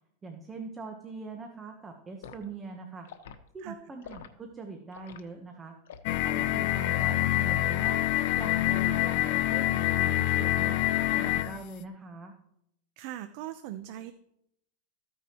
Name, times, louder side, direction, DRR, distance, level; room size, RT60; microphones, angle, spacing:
voice 1, 0.2-3.1 3.5-5.8 6.2-8.0 8.4-10.8 11.1-12.3, right 3 dB, 15° right, 3 dB, 1.0 m, -42 dB
Liquid, 2.2-2.4 3.0-3.4 4.0-4.3 4.9-5.2 5.9-6.1 6.9-7.1 7.8-8.1 8.8-9.2 9.5-9.8, left 7 dB, 90° left, 1.2 m, -47 dB
sound 1, 6.1-11.6, left 14 dB, 50° left, 0.4 m, -26 dB
voice 2, 13.0-14.1, right 13 dB, 50° right, 10 dB, 0.6 m, -40 dB
14.5 x 9.3 x 3.0 m, 0.75 s
supercardioid pair, 160°, 0 cm